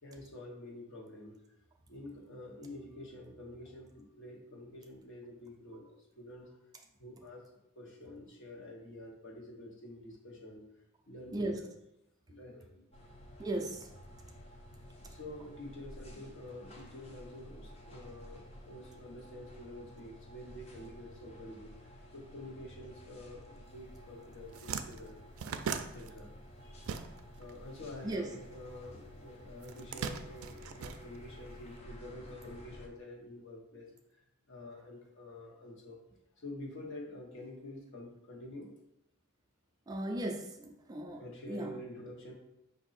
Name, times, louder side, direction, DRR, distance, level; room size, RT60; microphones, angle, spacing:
voice 1, 0.0-1.4 1.9-5.9 6.2-6.5 7.0-7.4 7.8-10.7 11.1-11.7 12.3-12.8 15.1-25.2 25.8-26.3 26.6-27.0 27.3-33.9 34.5-36.0 36.4-38.7 41.2-42.3, left 1 dB, 65° left, -2 dB, 1.1 m, -48 dB
sound 1, 12.9-32.9, equal, 30° left, 0.6 m, -52 dB
voice 2, 13.4-13.9 28.0-28.3 39.9-41.2 41.5-41.7, right 1 dB, 20° right, 2 dB, 0.4 m, -36 dB
sound 2, 23.9-24.1 24.3-27.5 27.8-29.0 29.6-31.6, right 6 dB, 85° right, 0.4 m, -40 dB
4.9 x 2.6 x 4.1 m, 0.84 s
head